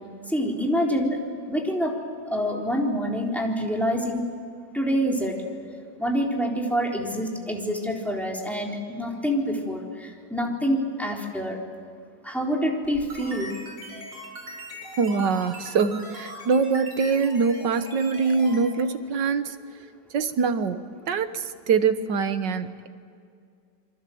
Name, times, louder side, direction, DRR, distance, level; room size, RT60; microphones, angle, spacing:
voice 1, 0.3-1.2 1.5-1.9 2.3-4.3 4.7-5.4 6.0-11.6 12.2-13.5, equal, ahead, -1 dB, 3.6 m, -26 dB
sound 1, 12.8-18.6, equal, 90° right, 7.9 m, -40 dB
voice 2, 15.0-19.5 20.1-20.8 21.1-22.9, right 5 dB, 70° right, 10 dB, 1.8 m, -24 dB
28.5 x 23.5 x 7.8 m, 2.2 s
omnidirectional pair, 2.0 m